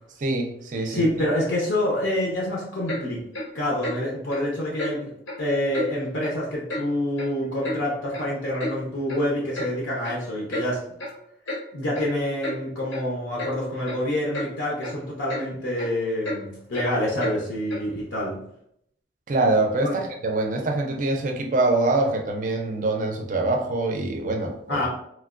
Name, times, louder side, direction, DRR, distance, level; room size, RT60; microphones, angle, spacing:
voice 1, 0.2-1.3 19.3-24.9, right 2 dB, 40° right, 3 dB, 0.4 m, -24 dB
voice 2, 0.9-3.2 3.5-5.1 5.4-10.8 11.7-18.4 19.8-20.0 24.7-24.9, left 1 dB, 70° left, -3 dB, 0.6 m, -27 dB
Clock, 2.9-3.0 3.3-3.5 3.8-4.0 4.3-4.4 4.8-4.9 5.3-5.4 5.7-5.9 6.2-6.4 6.7-6.8 7.2-7.8 8.1-8.2 8.6-8.7 9.1-9.2 9.6-9.7 10.0-10.2 10.5-10.7 11.0-11.2 11.5-11.6 11.9-12.1 12.4-12.6 12.9-13.0 13.4-13.5 13.9-14.0 14.3-14.5 14.8-15.0 15.3-15.5 15.7-15.9 16.2-16.4 16.7-16.9 17.2-17.4 17.7-17.8, left 1 dB, 90° left, 1.0 m, -31 dB
3.1 x 2.2 x 2.4 m, 0.72 s
head